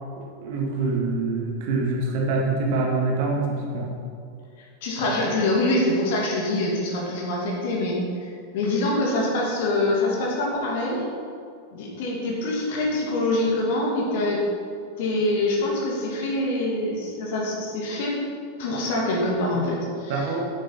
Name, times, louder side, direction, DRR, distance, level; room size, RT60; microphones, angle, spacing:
voice 1, 0.4-3.9 20.1-20.4, right 3 dB, 50° right, -1 dB, 1.9 m, -25 dB
voice 2, 4.8-11.0 11.7-14.4 15.0-18.2 18.6-20.3, left 1 dB, 50° left, -2 dB, 2.3 m, -25 dB
8.8 x 8.5 x 4.3 m, 2.3 s
figure-of-eight pair, 90°, 0 cm